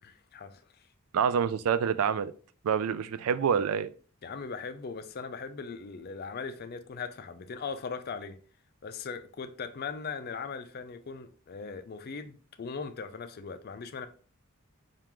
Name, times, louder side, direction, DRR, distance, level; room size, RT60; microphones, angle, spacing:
voice 1, 0.0-0.9 4.2-8.4 8.8-14.1, left 5 dB, 45° left, 0.4 m, -39 dB
voice 2, 1.1-2.3 2.6-3.9, right 7 dB, 80° right, 0.3 m, -27 dB
4.4 x 2.4 x 3.5 m
head